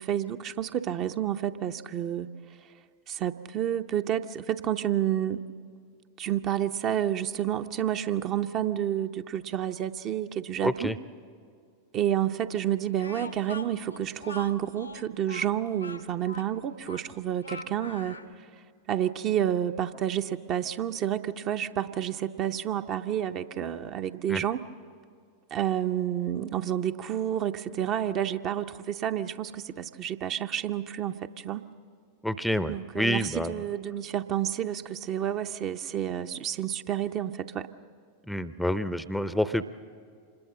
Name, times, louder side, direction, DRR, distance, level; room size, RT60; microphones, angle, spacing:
voice 1, 0.0-2.3 3.1-5.4 6.2-10.9 11.9-18.2 18.9-24.6 25.5-31.6 32.7-37.7, right 10 dB, 35° right, 8 dB, 0.7 m, -30 dB
voice 2, 10.6-11.0 24.3-24.4 32.2-33.6 38.3-39.7, equal, ahead, 14 dB, 0.6 m, -28 dB
Speech, 13.0-18.3, left 2 dB, 85° left, 1.1 m, -43 dB
26.0 x 20.5 x 7.5 m, 2.2 s
figure-of-eight pair, 90°, 0 cm